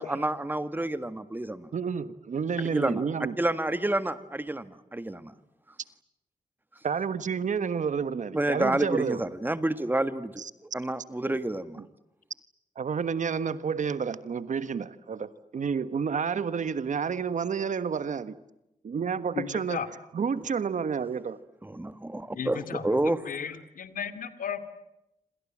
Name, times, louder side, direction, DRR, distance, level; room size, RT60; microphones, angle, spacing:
voice 1, 0.0-1.7 2.7-3.0 3.4-5.3 8.3-10.4 10.7-11.8 20.4-20.5 21.6-23.2, right 1 dB, 15° right, 12 dB, 1.6 m, -29 dB
voice 2, 1.7-3.3 6.8-9.2 11.2-11.3 12.8-18.4 18.8-19.8 20.1-21.4, right 6 dB, 65° right, 14 dB, 1.4 m, -30 dB
voice 3, 19.3-19.9 22.3-24.7, left 7 dB, 80° left, 11 dB, 2.5 m, -35 dB
27.5 x 26.5 x 7.5 m, 0.88 s
wide cardioid pair, 115°, 14 cm